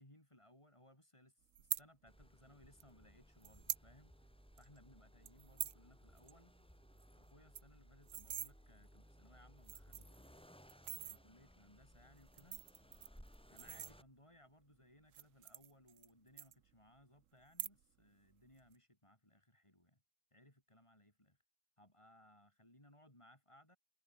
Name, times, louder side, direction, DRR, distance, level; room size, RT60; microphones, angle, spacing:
voice 1, 0.0-4.1 4.5-6.5 7.2-10.5 11.0-12.7 13.5-20.0 20.3-21.4 21.8-23.8, left 1 dB, 20° left, 5.5 m, -65 dB
sound 1, 1.5-1.8 2.8-2.9 3.4-3.9 4.2-4.3 4.6-4.8 5.2-5.8 6.2-6.3 6.6-6.7 7.0-7.1 7.3-8.5 9.2-9.3 9.6-10.2 10.7-11.2 12.2-14.3 15.0-16.1 16.4-17.0 17.4-18.0 18.3-18.7, right 10 dB, 65° right, 1.2 m, -45 dB
Accelerating revving vroom, 2.1-14.0, equal, 5° left, 4.5 m, -62 dB
omnidirectional pair, 1.5 m